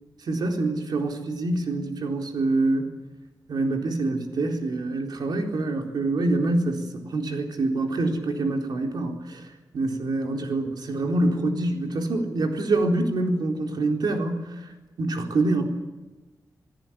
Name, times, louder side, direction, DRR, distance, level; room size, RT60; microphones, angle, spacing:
voice 1, 0.2-2.9 3.5-9.4 9.7-14.7 15.0-15.6, right 2 dB, 75° right, 3 dB, 4.1 m, -26 dB
28.0 x 17.5 x 8.9 m, 1.2 s
wide cardioid pair, 135°, 7 cm